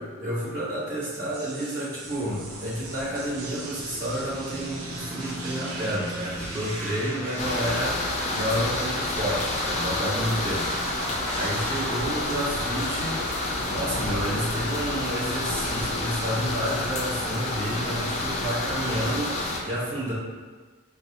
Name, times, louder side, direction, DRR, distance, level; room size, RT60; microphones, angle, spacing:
voice 1, 0.0-8.0 8.3-20.1, equal, 40° right, -12 dB, 1.3 m, -30 dB
sound 1, 1.1-19.5, right 2 dB, 80° right, 0.5 m, -41 dB
sound 2, 2.0-15.6, equal, 10° left, 1.2 m, -38 dB
sound 3, 7.4-19.6, left 2 dB, 30° left, 0.3 m, -29 dB
4.1 x 2.3 x 2.9 m, 1.4 s
head